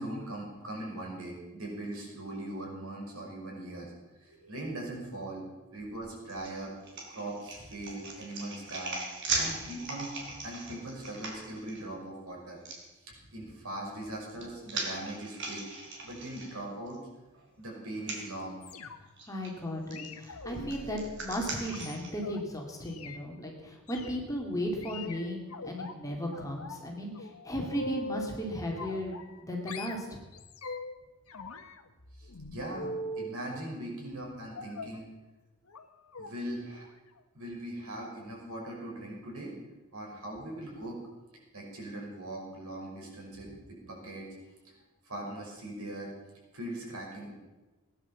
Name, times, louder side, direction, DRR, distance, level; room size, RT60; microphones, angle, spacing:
voice 1, 0.0-3.9 4.2-5.4 5.7-6.7 7.1-9.0 9.3-10.1 10.4-12.6 13.1-15.6 16.0-17.0 17.6-18.6 32.2-35.1 36.2-36.8 37.3-39.6 39.9-41.0 41.5-44.3 44.6-44.7 45.0-46.1 46.5-47.3, right 1 dB, 80° right, -2 dB, 5.8 m, -40 dB
sound 1, 6.3-11.8 12.6-12.8 13.9-17.0 17.3-17.4 18.0-18.2 19.2-19.5 19.9-22.1, right 3 dB, 55° right, 3.9 m, -38 dB
sound 2, 18.6-19.2 19.9-22.4 22.8-23.2 23.9-24.2 24.8-25.9 26.3-26.9 27.2-28.4 28.8-29.4 29.7-31.0 31.3-33.4 34.5-35.0 35.7-35.9 36.1-36.3 36.7-36.9 37.2-37.3, left 2 dB, 80° left, 1.3 m, -42 dB
voice 2, 19.3-29.2 29.4-30.2, equal, 15° left, 0 dB, 2.5 m, -35 dB
17.5 x 10.5 x 7.3 m, 1.1 s
head